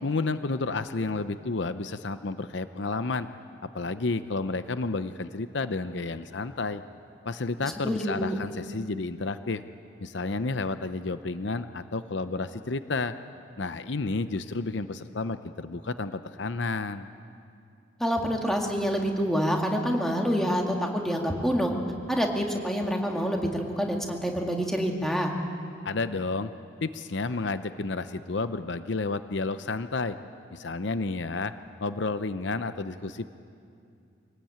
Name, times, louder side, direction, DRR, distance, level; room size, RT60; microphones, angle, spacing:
voice 1, 0.0-3.3 3.7-6.8 7.2-9.6 10.0-13.1 13.6-17.1 25.8-26.5 26.8-30.1 30.5-31.5 31.8-33.3, left 3 dB, 65° left, 11 dB, 0.7 m, -31 dB
voice 2, 7.8-8.4 18.0-21.7 22.1-25.3, equal, ahead, 0 dB, 2.3 m, -27 dB
25.5 x 19.0 x 8.8 m, 2.5 s
head